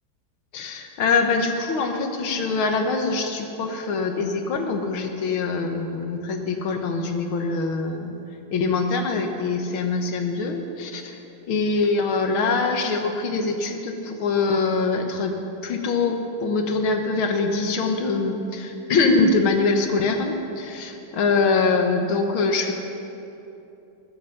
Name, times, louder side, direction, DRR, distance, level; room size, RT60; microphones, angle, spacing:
voice 1, 0.5-8.1 8.5-11.2 11.5-15.3 15.6-22.7, left 4 dB, 75° left, 4 dB, 2.0 m, -23 dB
19.5 x 11.5 x 5.9 m, 2.9 s
omnidirectional pair, 2.3 m